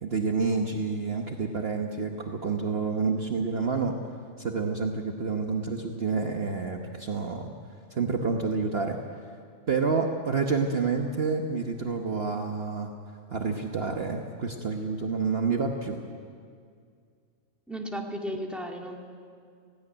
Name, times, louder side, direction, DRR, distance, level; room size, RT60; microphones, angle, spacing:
voice 1, 0.0-3.9 4.4-7.5 7.9-9.0 9.7-12.9 13.3-16.0, right 4 dB, 45° right, 3 dB, 1.3 m, -28 dB
voice 2, 17.7-19.0, equal, ahead, 0 dB, 2.2 m, -34 dB
17.5 x 16.0 x 9.9 m, 2.2 s
omnidirectional pair, 1.5 m